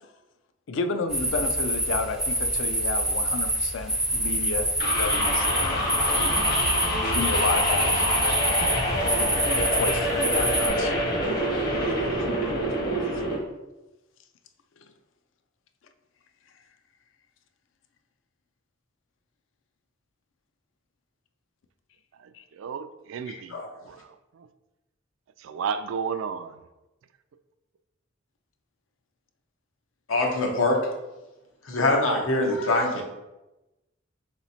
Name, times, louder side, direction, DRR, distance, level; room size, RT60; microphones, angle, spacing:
voice 1, 0.7-6.4 7.0-8.1 8.9-10.9 11.9-12.0 22.3-22.4, left 4 dB, 70° left, 7 dB, 0.4 m, -31 dB
sound 1, 1.1-10.7, right 1 dB, 5° right, 0.4 m, -26 dB
sound 2, 4.8-13.4, equal, 45° left, 1.0 m, -26 dB
voice 2, 22.2-23.6 23.9-24.5 25.4-26.6, right 6 dB, 70° right, 11 dB, 0.3 m, -33 dB
voice 3, 30.1-30.9 31.6-33.0, left 2 dB, 85° left, 1 dB, 0.9 m, -23 dB
3.9 x 3.0 x 4.1 m, 1.0 s
head